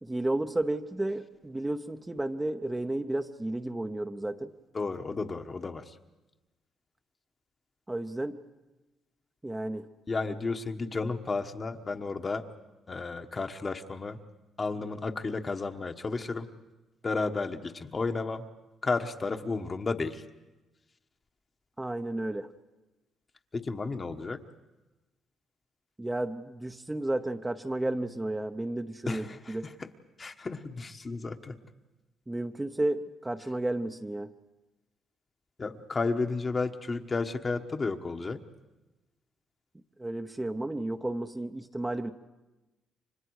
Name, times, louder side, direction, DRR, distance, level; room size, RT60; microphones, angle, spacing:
voice 1, 0.0-4.5 7.9-8.4 9.4-9.8 21.8-22.5 26.0-29.7 32.3-34.3 40.0-42.1, right 1 dB, 15° right, 6 dB, 0.9 m, -32 dB
voice 2, 4.7-5.8 10.1-12.4 12.9-14.2 14.6-16.5 17.0-18.4 18.8-20.2 23.5-24.4 29.1-29.7 30.2-31.6 35.6-38.4, left 3 dB, 35° left, 6 dB, 1.3 m, -32 dB
30.0 x 25.0 x 4.8 m, 1.1 s
cardioid pair, 90°, 0 cm